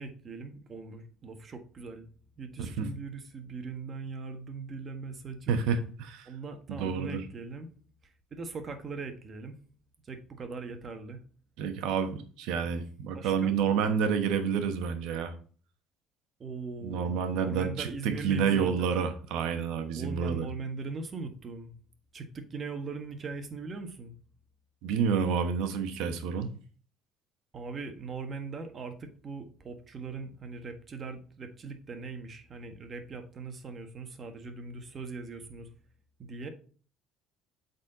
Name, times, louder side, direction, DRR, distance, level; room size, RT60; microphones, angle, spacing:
voice 1, 0.0-2.0 2.4-5.6 6.2-7.7 8.3-9.6 10.0-11.2 12.6-12.7 13.1-13.5 16.4-18.9 19.9-21.7 22.1-24.1 27.5-35.7 36.2-36.5, right 4 dB, 40° right, 1.5 m, -40 dB
voice 2, 2.6-2.9 5.5-6.3 6.7-7.2 11.6-15.3 16.8-20.5 24.8-26.5, right 6 dB, 80° right, 1.1 m, -29 dB
8.1 x 4.2 x 4.0 m
supercardioid pair, 80°, 0 cm